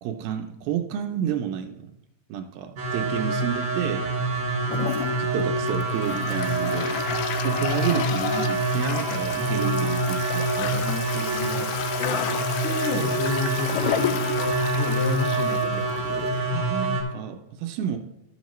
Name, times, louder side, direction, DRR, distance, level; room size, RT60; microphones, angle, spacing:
voice 1, 0.0-1.9 2.3-4.1 5.2-6.9 7.4-10.7 16.5-18.0, right 9 dB, 80° right, 6 dB, 2.3 m, -30 dB
sound 1, 2.8-17.0, right 2 dB, 40° right, 1.6 m, -26 dB
Toilet flush, 4.7-16.5, left 10 dB, 90° left, 1.9 m, -32 dB
voice 2, 10.6-11.7 12.0-16.3, left 4 dB, 70° left, 2 dB, 2.1 m, -32 dB
12.0 x 7.2 x 3.0 m, 0.91 s
omnidirectional pair, 4.4 m